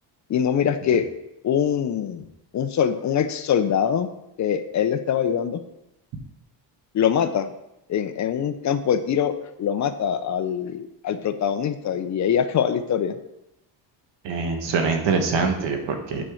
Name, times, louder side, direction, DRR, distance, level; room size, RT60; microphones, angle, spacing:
voice 1, 0.3-1.0 1.4-2.3 2.5-4.1 4.4-5.6 6.9-7.5 7.9-9.3 9.6-13.2, left 8 dB, 40° left, 10 dB, 0.5 m, -23 dB
voice 2, 14.2-16.2, right 4 dB, 80° right, 4 dB, 1.5 m, -24 dB
8.6 x 4.4 x 4.9 m, 0.87 s
cardioid pair, 140°, 43 cm